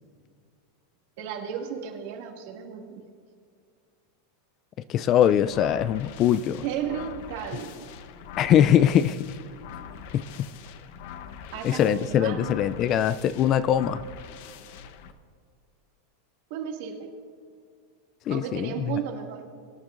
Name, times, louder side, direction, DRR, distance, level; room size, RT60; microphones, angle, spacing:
voice 1, 1.2-3.0 6.6-7.8 11.5-12.5 16.5-17.1 18.3-19.4, right 8 dB, 60° right, 1 dB, 2.1 m, -34 dB
voice 2, 4.9-6.6 8.4-9.2 10.1-10.5 11.6-14.0 18.3-19.0, left 10 dB, 30° left, 15 dB, 0.3 m, -22 dB
sound 1, 5.2-15.1, left 8 dB, 55° left, 0.8 m, -43 dB
23.0 x 10.5 x 2.5 m, 2.2 s
supercardioid pair, 155°, 0 cm